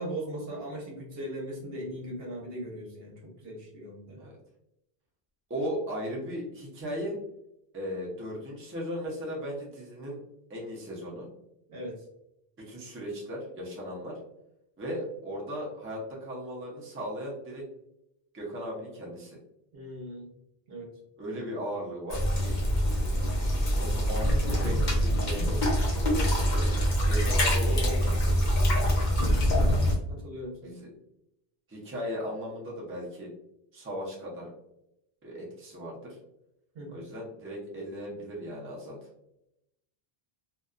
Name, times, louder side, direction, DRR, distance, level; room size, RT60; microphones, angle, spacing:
voice 1, 0.0-4.2 11.7-12.0 19.7-20.3 20.7-20.9 29.4-29.8 30.1-30.8 36.7-37.0, right 1 dB, 65° right, -2 dB, 1.0 m, -39 dB
voice 2, 5.5-7.2 7.7-10.2 10.5-11.3 12.6-14.2 14.8-17.7 18.3-19.4 21.2-22.6 23.4-26.6 27.1-28.3 30.6-30.9 31.7-33.3 33.7-34.5 35.2-36.2 36.9-39.0, equal, 15° right, -3 dB, 0.5 m, -37 dB
sound 1, 22.1-29.9, equal, 50° left, 0.7 m, -25 dB
2.7 x 2.2 x 2.4 m, 0.82 s
omnidirectional pair, 1.1 m